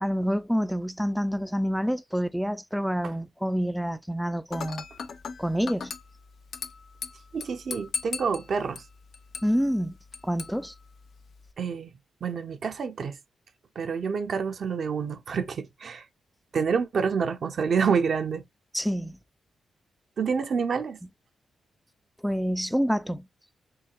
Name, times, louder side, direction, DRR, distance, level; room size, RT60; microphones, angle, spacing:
voice 1, 0.0-4.8 5.4-5.9 9.4-9.9 10.2-10.7 18.7-19.2 22.2-23.3, equal, ahead, 0.4 m, -27 dB
Dishes pots and pans / Glass, 4.5-11.5, left 6 dB, 65° left, 0.6 m, -40 dB
voice 2, 7.3-8.8 11.6-11.9 12.2-13.1 13.8-16.0 16.5-18.4 20.2-21.0, right 6 dB, 60° right, 0.6 m, -28 dB
4.6 x 3.7 x 2.3 m
cardioid pair, 100°, 0 cm